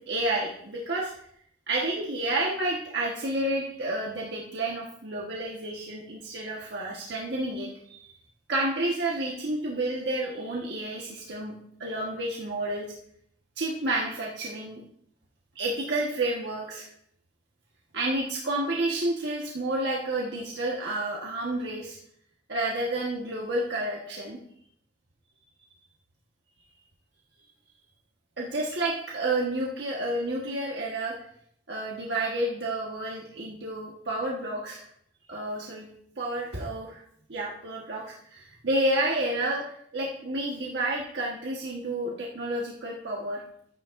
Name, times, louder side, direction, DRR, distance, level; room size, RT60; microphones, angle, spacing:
voice 1, 0.1-1.1 1.7-8.1 8.5-12.9 13.6-14.8 15.5-16.9 17.9-22.0 22.5-24.4 28.4-31.1 31.7-34.9 35.3-35.9 36.2-37.0 37.3-39.6 39.9-43.4, right 1 dB, 65° right, -3 dB, 1.4 m, -30 dB
12.5 x 9.6 x 2.6 m, 0.68 s
head